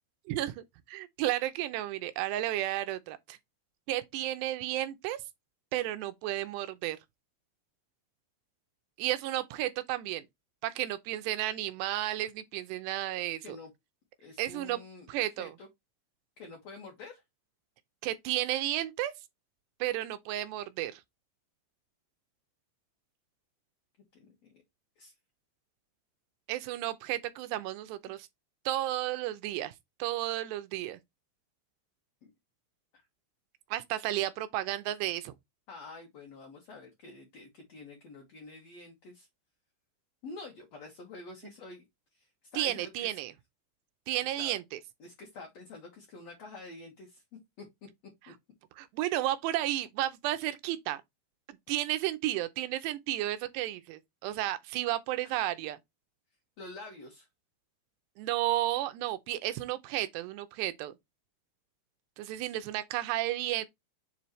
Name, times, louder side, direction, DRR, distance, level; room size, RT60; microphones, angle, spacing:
voice 1, 0.3-3.4 3.9-5.2 5.7-7.0 9.0-10.2 10.6-13.4 14.4-14.8 15.1-15.5 18.0-19.1 19.8-21.0 26.5-28.3 28.7-29.7 30.0-31.0 33.7-35.3 42.6-43.3 44.1-44.8 48.8-51.0 51.7-55.8 58.2-60.9 62.2-63.7, right 14 dB, 80° right, 2.6 m, -32 dB
voice 2, 14.2-15.1 15.4-15.7 16.4-17.2 24.2-24.6 25.0-25.1 32.2-32.3 32.9-33.0 35.7-39.3 40.2-41.9 42.1-43.1 44.2-44.6 45.0-47.2 47.6-47.7 51.7-51.8 55.2-55.4 56.6-57.3, left 3 dB, 60° left, 1.8 m, -48 dB
7.4 x 4.2 x 3.1 m
omnidirectional pair, 5.2 m